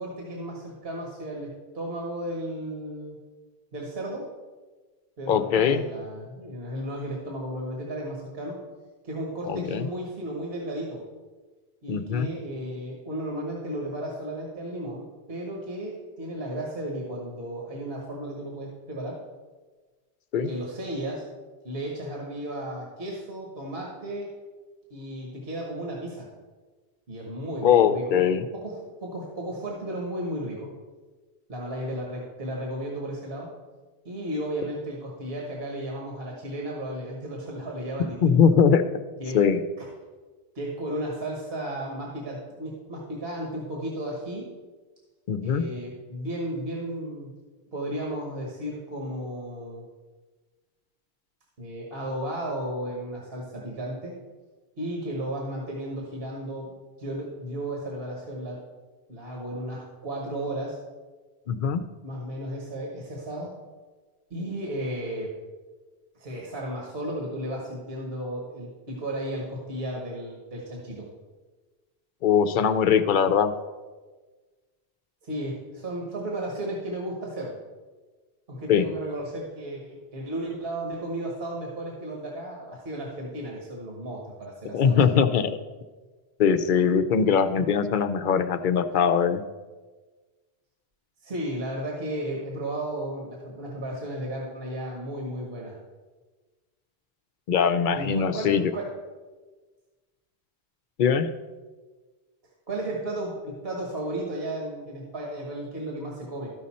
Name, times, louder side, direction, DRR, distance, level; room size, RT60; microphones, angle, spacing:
voice 1, 0.0-3.2 3.7-4.3 5.2-8.6 9.0-11.0 11.8-19.2 20.4-21.2 21.6-24.3 24.9-26.3 27.1-30.7 31.5-33.5 34.0-38.5 39.2-39.4 39.8-39.9 40.5-44.5 45.4-47.3 47.7-49.9 51.6-54.2 54.8-56.7 57.0-58.6 59.1-60.8 62.0-63.5 64.3-65.3 66.1-71.1 75.2-77.5 78.5-85.0 91.2-95.8 97.9-98.9 102.7-106.5, right 1 dB, 65° right, -2 dB, 1.5 m, -34 dB
voice 2, 5.3-5.8 9.4-9.9 11.9-12.3 20.3-20.5 27.6-28.4 38.2-38.8 39.3-39.6 45.3-45.6 61.5-61.8 72.2-73.5 78.7-78.8 84.7-85.5 86.4-89.4 97.5-98.7 101.0-101.3, left 7 dB, 60° left, 10 dB, 0.6 m, -21 dB
13.5 x 5.2 x 4.2 m, 1.3 s
omnidirectional pair, 1.1 m